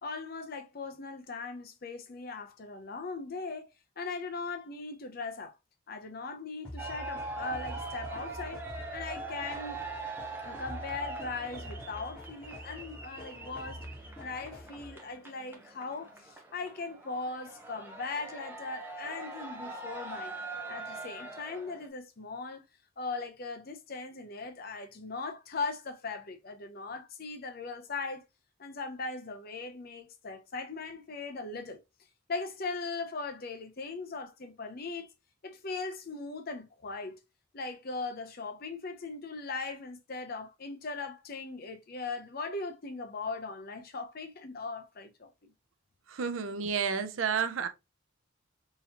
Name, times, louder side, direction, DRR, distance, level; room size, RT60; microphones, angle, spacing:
voice 1, 0.0-3.7 4.0-5.5 5.9-8.6 8.9-9.8 10.4-13.8 14.2-20.4 20.7-22.6 23.0-28.2 28.6-31.8 32.3-35.1 35.4-37.2 37.5-45.5, left 3 dB, 50° left, 0.6 m, -39 dB
sound 1, 6.6-15.1, left 1 dB, 5° left, 1.4 m, -46 dB
sound 2, 6.8-21.9, right 3 dB, 10° right, 0.6 m, -42 dB
voice 2, 46.1-47.7, right 6 dB, 80° right, 0.5 m, -31 dB
3.7 x 2.9 x 2.8 m
head